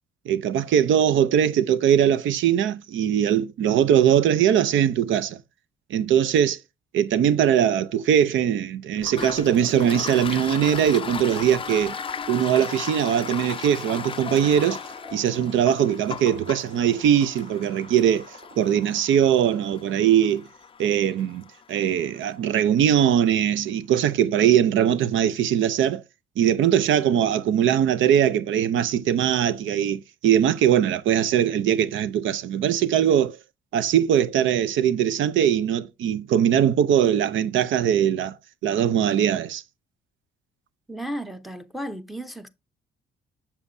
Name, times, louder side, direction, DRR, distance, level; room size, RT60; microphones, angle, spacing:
voice 1, 0.3-5.4 5.9-6.6 6.9-11.9 12.3-14.8 15.1-18.3 18.6-20.5 20.8-21.4 21.7-26.0 26.4-33.4 33.7-38.4 38.6-39.6, right 9 dB, 75° right, 0.6 m, -21 dB
Toilet flush, 9.0-22.3, left 6 dB, 25° left, 0.4 m, -37 dB
Wind instrument woodwind instrument, 11.4-15.3, left 5 dB, 30° right, 4.6 m, -44 dB
sound 1, 12.2-19.0, right 1 dB, 50° right, 3.6 m, -49 dB
voice 2, 40.9-42.5, right 1 dB, ahead, 0.8 m, -34 dB
7.1 x 7.0 x 2.6 m
cardioid pair, 90°, 20 cm